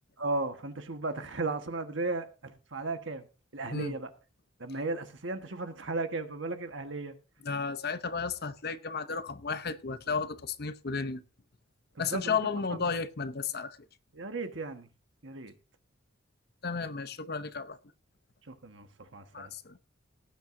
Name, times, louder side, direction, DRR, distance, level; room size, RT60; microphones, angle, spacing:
voice 1, 0.2-3.3 3.5-4.1 4.6-7.1 12.0-12.4 12.7-12.8 14.1-14.9 15.2-15.5 18.5-19.5, right 3 dB, 65° right, 1.4 m, -35 dB
voice 2, 7.4-11.2 12.0-13.8 16.6-17.8 19.3-19.8, left 5 dB, 50° left, 0.8 m, -33 dB
18.0 x 9.0 x 2.7 m
head